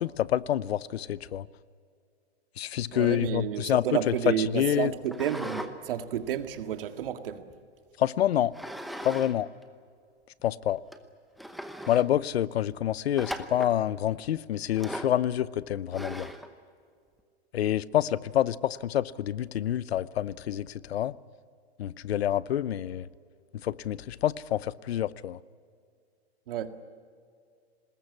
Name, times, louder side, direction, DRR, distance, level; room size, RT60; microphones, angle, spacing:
voice 1, 0.0-1.4 2.6-3.8 4.5-4.9 8.0-8.5 9.0-9.5 10.4-10.8 11.9-16.3 17.5-21.1 21.8-23.1 23.6-25.4, left 11 dB, 70° left, 0.8 m, -27 dB
voice 2, 2.9-7.4 26.5-26.8, right 10 dB, 55° right, 2.0 m, -31 dB
sound 1, 5.1-5.7 6.1-7.5 8.5-9.3 9.6-9.7 10.4-10.5 10.9-11.0 11.4-12.1 13.2-13.8 14.8-15.2 15.9-16.5, equal, ahead, 0.8 m, -38 dB
24.5 x 20.5 x 9.7 m
hypercardioid pair, 155°, 33 cm